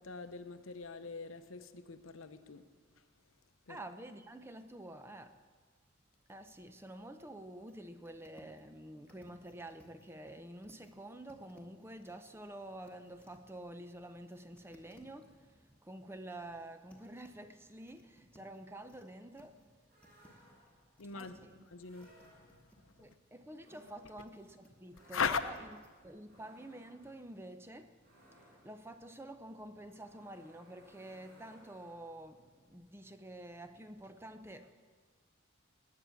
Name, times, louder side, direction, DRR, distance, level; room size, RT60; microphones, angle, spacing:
voice 1, 0.0-2.7 3.7-3.8 21.0-23.2 25.0-25.4, left 5 dB, 80° left, 0.8 m, -40 dB
voice 2, 3.7-5.4 6.3-19.6 20.1-20.3 21.1-21.5 23.0-25.6 26.0-27.9 28.3-34.7, right 1 dB, 10° right, 0.6 m, -49 dB
sound 1, 7.7-7.8 8.0-8.7 9.0-10.9 11.2-13.5 14.5-15.3 16.5-17.3 17.8-19.1 19.4-19.8 20.0-22.8 23.1-24.3 24.6-24.9 25.5-25.9, equal, 5° left, 1.5 m, -64 dB
sound 2, 19.9-21.0 21.8-22.8 23.6-32.3, right 1 dB, 45° right, 5.7 m, -64 dB
18.5 x 8.6 x 7.1 m
head